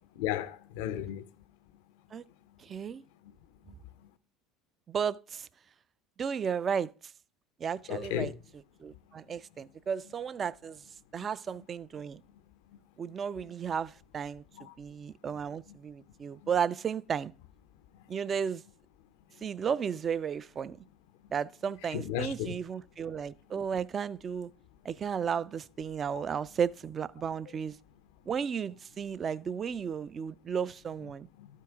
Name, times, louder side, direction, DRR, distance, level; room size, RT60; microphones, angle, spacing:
voice 1, 0.2-1.2 7.9-8.3 14.6-14.7 21.9-22.6 31.4-31.5, left 11 dB, 80° left, 0.5 m, -34 dB
voice 2, 2.6-3.0 4.9-5.5 6.2-6.9 7.6-8.3 8.8-10.8 11.1-12.2 13.0-14.4 14.8-17.3 18.1-18.6 19.4-20.8 21.3-24.5 24.8-27.8 28.3-31.3, right 7 dB, 35° right, 0.3 m, -34 dB
12.0 x 4.6 x 3.5 m
supercardioid pair, 90°, 0 cm